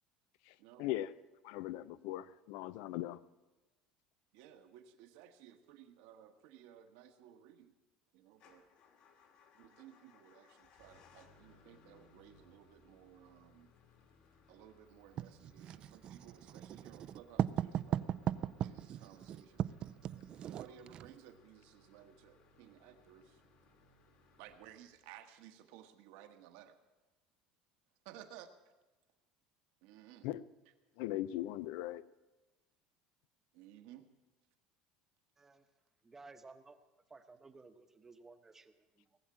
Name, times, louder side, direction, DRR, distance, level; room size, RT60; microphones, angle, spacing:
voice 1, 0.4-1.1 1.4-3.2 30.2-30.4 31.0-32.0, left 15 dB, 75° left, 18 dB, 0.5 m, -39 dB
voice 2, 4.3-7.7 8.1-8.6 9.5-13.7 14.5-18.1 18.6-19.7 20.4-23.4 24.4-26.8 28.0-28.5 29.8-30.3 33.5-34.1, right 11 dB, 75° right, 7 dB, 1.3 m, -57 dB
Motor vehicle (road) / Engine starting / Idling, 8.3-25.3, left 4 dB, 60° left, 2.1 m, -66 dB
Writing, 15.2-21.1, right 10 dB, 40° right, 0.4 m, -38 dB
voice 3, 35.4-35.7 36.0-36.8 37.1-39.2, right 3 dB, 15° right, 9 dB, 0.9 m, -57 dB
19.0 x 7.3 x 8.8 m, 1.2 s
cardioid pair, 135°, 2 cm